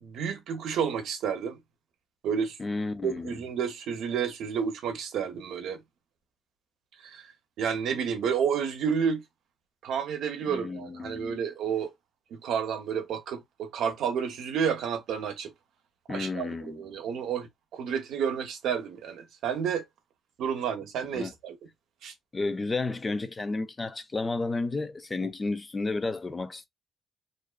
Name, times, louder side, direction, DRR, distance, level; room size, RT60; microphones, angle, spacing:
voice 1, 0.0-1.6 2.2-2.6 3.0-5.8 7.0-7.2 7.6-9.2 9.8-11.9 12.3-15.5 16.1-19.8 20.4-21.6 22.0-22.1, right 7 dB, 80° right, 0.7 m, -30 dB
voice 2, 2.6-3.4 10.4-11.4 16.1-16.8 21.1-21.3 22.3-26.7, left 3 dB, 30° left, 0.4 m, -32 dB
2.5 x 2.2 x 2.3 m
cardioid pair, 75°, 0 cm